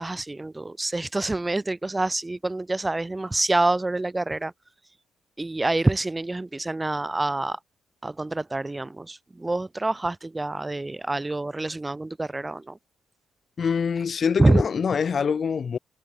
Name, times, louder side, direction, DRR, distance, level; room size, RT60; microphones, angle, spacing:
voice 1, 0.0-4.5 5.4-7.6 8.0-12.8 14.4-14.6, right 2 dB, 15° right, 7.7 m, -26 dB
voice 2, 13.6-15.8, left 6 dB, 45° left, 3.2 m, -24 dB
cardioid pair, 90°, 0 cm